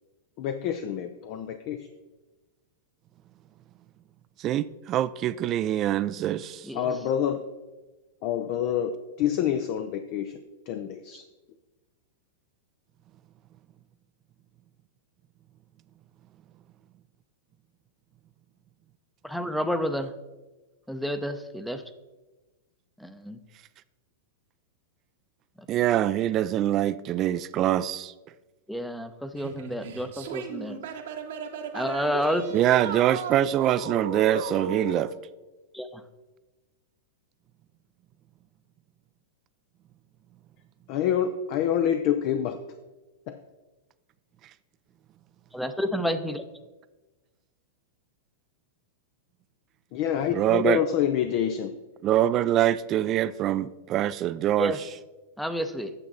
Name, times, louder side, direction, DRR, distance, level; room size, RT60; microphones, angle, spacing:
voice 1, 0.4-1.9 6.7-7.4 8.2-10.3 10.7-11.2 40.9-42.6 43.3-43.4 49.9-51.7, left 9 dB, 50° left, 0.5 m, -27 dB
voice 2, 4.4-6.6 25.7-28.1 32.5-35.1 50.3-50.8 52.0-54.7, right 12 dB, 35° right, 0.4 m, -24 dB
voice 3, 19.2-20.1 20.9-21.8 23.0-23.4 28.7-30.8 31.7-32.5 35.7-36.0 45.5-46.4 54.6-54.8 55.4-55.9, equal, ahead, 0.7 m, -30 dB
sound 1, 29.4-35.0, right 5 dB, 70° right, 1.1 m, -35 dB
9.1 x 7.0 x 4.0 m
hypercardioid pair, 110°, 0 cm